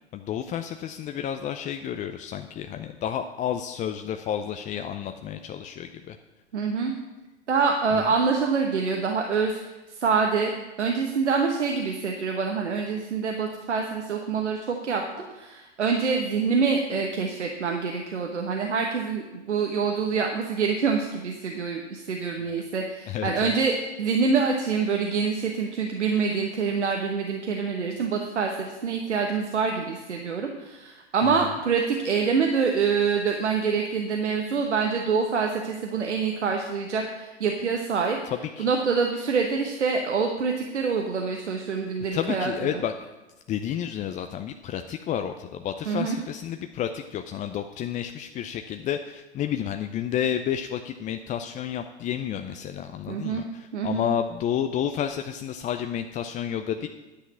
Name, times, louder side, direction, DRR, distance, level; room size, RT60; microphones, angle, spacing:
voice 1, 0.1-6.2 7.9-8.0 22.4-22.6 23.1-23.5 31.2-31.5 38.6-38.7 42.1-42.9 43.5-56.9, left 9 dB, 25° left, 6 dB, 0.5 m, -31 dB
voice 2, 6.5-6.9 7.5-10.5 10.8-15.0 15.3-38.2 38.6-42.8 45.9-46.2 53.1-53.5 53.7-54.1, right 5 dB, 90° right, 2 dB, 1.1 m, -26 dB
10.0 x 5.9 x 8.3 m, 1.1 s
hypercardioid pair, 100°, 34 cm